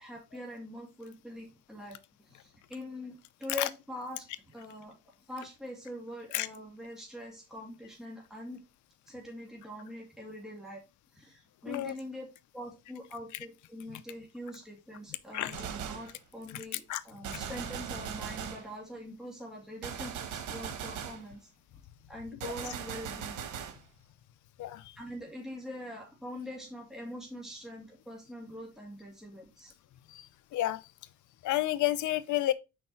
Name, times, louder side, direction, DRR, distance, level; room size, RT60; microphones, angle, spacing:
voice 1, 0.0-3.1 3.4-4.3 4.5-5.0 5.3-8.6 9.1-10.8 11.1-12.3 12.5-21.5 22.1-23.4 25.0-29.7, left 1 dB, ahead, 2.5 m, -43 dB
Gunshot gunfire, 15.5-16.2 17.2-18.7 19.8-21.2 22.4-23.8, right 8 dB, 80° right, 1.2 m, -39 dB
voice 2, 31.4-32.5, left 14 dB, 75° left, 0.5 m, -30 dB
5.3 x 4.7 x 4.3 m
cardioid pair, 90°, 30 cm